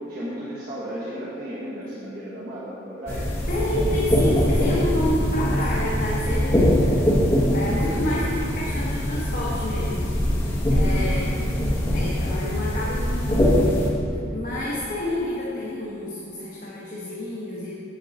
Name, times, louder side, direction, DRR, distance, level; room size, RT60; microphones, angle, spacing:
voice 1, 0.1-3.3 7.5-7.9 10.8-11.7 14.7-15.0, equal, 50° right, -9 dB, 1.4 m, -35 dB
sound 1, 3.1-13.9, equal, 15° left, 1.3 m, -22 dB
voice 2, 3.5-7.0 7.5-10.1 10.7-11.3 11.9-13.9 14.3-17.8, left 1 dB, 45° left, -6 dB, 1.1 m, -29 dB
8.2 x 8.2 x 4.1 m, 2.6 s
head